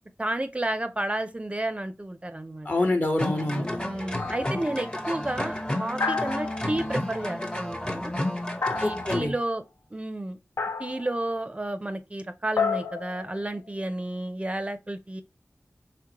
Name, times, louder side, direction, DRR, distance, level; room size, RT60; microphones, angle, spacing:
voice 1, 0.2-2.9 3.8-8.1 8.7-9.6 9.9-10.4 10.8-15.2, right 1 dB, 25° right, 0.4 m, -31 dB
voice 2, 2.6-3.7 8.8-9.3, left 2 dB, 40° left, 1.0 m, -26 dB
sound 1, 3.2-9.3, left 1 dB, 20° left, 0.8 m, -31 dB
sound 2, 4.2-4.7 6.0-6.9 8.6-9.4 10.6-11.1 12.6-13.8, left 5 dB, 85° left, 0.4 m, -31 dB
3.7 x 3.4 x 2.9 m
wide cardioid pair, 50°, 5 cm